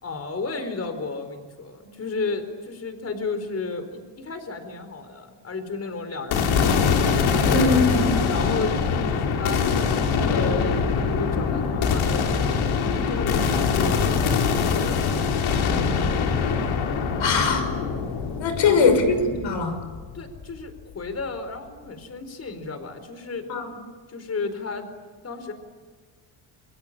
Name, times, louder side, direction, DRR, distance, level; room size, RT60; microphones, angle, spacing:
voice 1, 0.0-6.8 8.2-9.7 10.3-14.0 14.5-15.0 15.6-16.3 18.6-18.9 20.1-23.5 24.1-24.9 25.2-25.5, left 4 dB, 30° left, 9 dB, 4.4 m, -33 dB
sound 1, 6.3-20.6, left 5 dB, 90° left, 3.6 m, -23 dB
voice 2, 7.4-8.1 17.2-17.7 18.4-19.8 23.5-23.7, left 4 dB, 70° left, 8 dB, 6.1 m, -21 dB
29.0 x 23.0 x 8.7 m, 1.5 s
cardioid pair, 125°, 47 cm